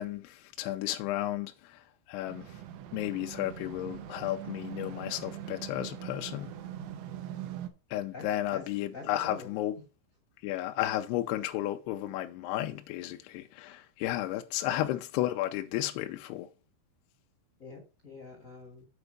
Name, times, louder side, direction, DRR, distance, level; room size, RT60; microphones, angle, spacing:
voice 1, 0.0-2.5 2.9-6.5 7.9-9.8 10.4-16.5, left 14 dB, 80° left, 2.4 m, -33 dB
sound 1, 2.3-7.7, right 11 dB, 80° right, 3.2 m, -42 dB
voice 2, 8.9-9.5 14.6-14.7 17.6-18.9, left 3 dB, 40° left, 1.1 m, -45 dB
8.2 x 4.4 x 6.5 m
omnidirectional pair, 5.2 m